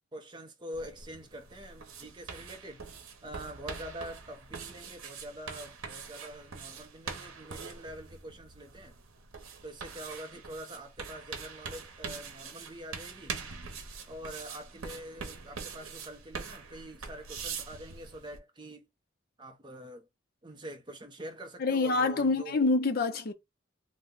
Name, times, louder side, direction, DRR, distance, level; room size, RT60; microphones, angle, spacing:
voice 1, 0.1-2.8 3.2-9.0 9.6-13.3 14.1-18.9 19.4-20.1 20.4-22.6, equal, 20° right, 0.6 m, -45 dB
sound 1, 0.7-18.4, right 5 dB, 90° right, 0.7 m, -43 dB
voice 2, 21.6-23.3, left 3 dB, 45° left, 0.5 m, -26 dB
2.7 x 2.1 x 3.6 m
head